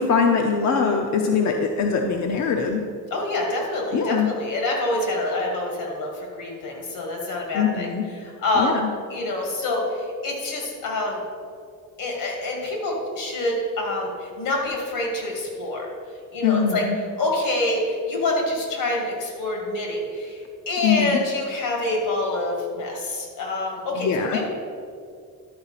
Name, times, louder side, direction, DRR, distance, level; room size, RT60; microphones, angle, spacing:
voice 1, 0.0-2.8 3.9-4.3 7.5-8.0 8.6-8.9 16.4-17.0 20.8-21.2 24.0-24.4, left 6 dB, 55° left, 3 dB, 0.7 m, -22 dB
voice 2, 3.1-7.9 8.2-8.7 9.1-11.2 12.0-15.9 16.3-16.8 17.2-24.5, left 2 dB, 90° left, 0 dB, 2.4 m, -26 dB
11.5 x 4.7 x 5.7 m, 2.3 s
cardioid pair, 165°, 32 cm